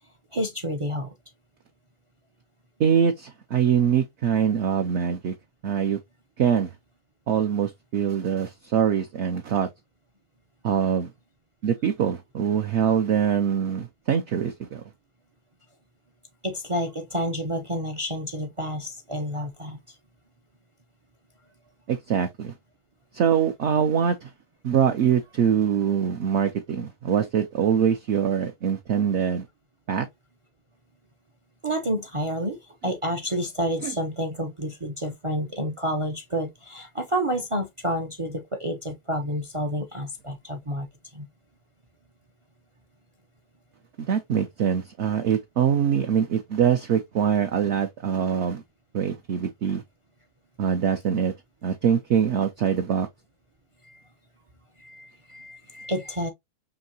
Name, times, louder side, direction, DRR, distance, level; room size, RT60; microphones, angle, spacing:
voice 1, 0.3-1.1 16.4-19.9 31.6-32.6 32.8-40.9 41.1-41.3 53.9-54.0 54.8-56.3, equal, 45° right, 0.4 m, -29 dB
voice 2, 2.8-5.3 5.6-6.0 6.4-6.7 7.3-9.7 10.6-11.1 11.6-14.8 21.9-22.5 23.1-24.3 24.6-29.5 29.9-30.0 33.8-33.9 44.0-48.6 48.9-49.8 50.6-51.3 51.6-53.1, right 8 dB, 60° right, 0.8 m, -23 dB
5.3 x 2.8 x 2.7 m
omnidirectional pair, 1.6 m